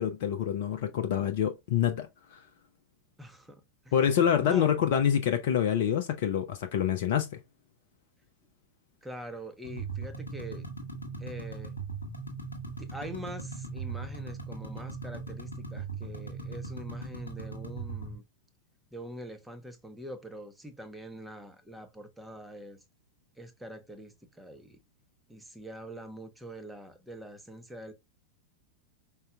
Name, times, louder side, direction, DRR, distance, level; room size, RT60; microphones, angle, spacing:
voice 1, 0.0-2.4 3.9-7.4, left 9 dB, 50° left, 0.6 m, -27 dB
voice 2, 3.2-3.9 4.4-4.7 9.0-10.7 11.2-11.7 12.8-18.2 18.9-22.8 23.4-24.8 25.3-27.9, equal, 5° right, 0.9 m, -44 dB
sound 1, 9.6-18.1, right 3 dB, 80° left, 1.2 m, -39 dB
5.5 x 3.9 x 2.2 m
figure-of-eight pair, 90°, 0 cm